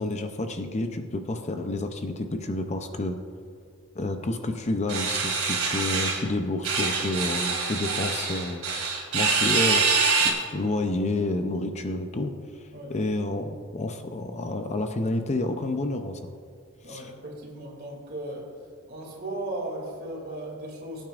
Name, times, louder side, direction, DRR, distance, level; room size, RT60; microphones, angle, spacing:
voice 1, 0.0-3.2 3.9-8.6 9.1-16.3 16.9-17.1, left 2 dB, 30° left, 6 dB, 0.5 m, -29 dB
sound 1, 4.9-6.2 6.6-10.3, right 4 dB, 65° right, 2.4 m, -25 dB
voice 2, 16.8-18.5 18.9-21.1, right 1 dB, 45° right, -1 dB, 2.6 m, -36 dB
20.5 x 9.0 x 2.5 m, 2.3 s
head